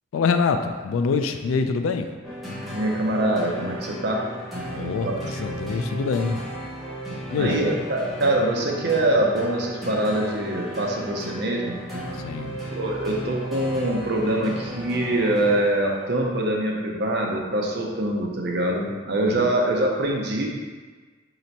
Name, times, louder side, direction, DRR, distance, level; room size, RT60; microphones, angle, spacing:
voice 1, 0.1-2.1 4.7-6.4 7.3-7.6 12.1-12.6 19.3-19.5, left 5 dB, 85° left, 7 dB, 0.3 m, -25 dB
sound 1, 2.2-16.0, equal, ahead, 0.7 m, -35 dB
voice 2, 2.7-4.2 4.8-5.1 7.4-11.8 12.7-20.5, right 1 dB, 55° right, 0 dB, 0.6 m, -24 dB
3.3 x 2.9 x 4.0 m, 1.4 s
head